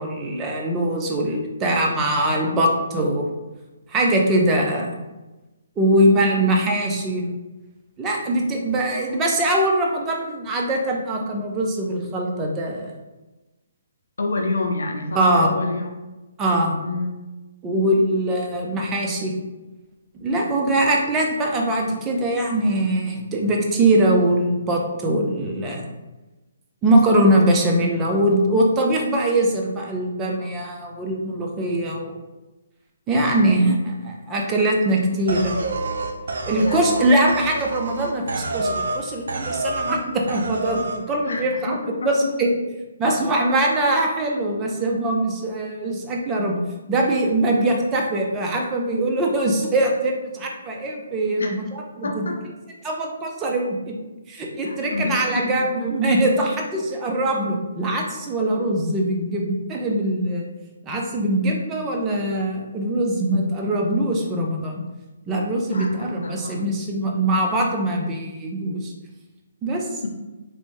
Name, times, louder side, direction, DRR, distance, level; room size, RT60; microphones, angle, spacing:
voice 1, 0.0-3.3 3.9-5.0 5.8-7.3 8.0-12.9 15.1-15.6 16.4-16.8 17.6-19.3 20.2-25.8 26.8-32.1 33.1-35.5 36.5-42.5 43.0-46.6 46.9-52.3 52.8-54.0 54.3-60.5 60.8-64.8 65.3-68.9 69.6-70.0, right 1 dB, 15° right, 0 dB, 0.5 m, -22 dB
voice 2, 14.2-15.8 16.8-17.1 33.4-33.7 36.7-37.0 41.2-41.4 41.8-42.1 51.4-51.5 52.0-52.4 54.6-55.6 65.7-66.6, left 3 dB, 80° left, 3 dB, 0.5 m, -27 dB
sound 1, 35.3-39.0 39.3-40.0 40.3-41.0, right 2 dB, 70° right, 0.5 m, -28 dB
3.3 x 2.5 x 3.2 m, 1.1 s
hypercardioid pair, 160°, 0 cm